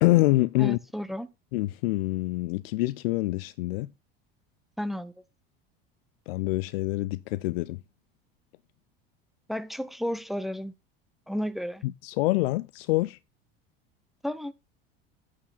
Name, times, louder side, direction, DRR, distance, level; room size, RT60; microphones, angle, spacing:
voice 1, 0.0-0.8 1.5-3.9 6.3-7.8 11.8-13.2, left 19 dB, 80° left, 0.5 m, -26 dB
voice 2, 0.6-1.3 4.8-5.1 9.5-10.7 11.3-11.8 14.2-14.5, equal, ahead, 0.8 m, -32 dB
8.8 x 4.7 x 5.7 m
hypercardioid pair, 80°, 29 cm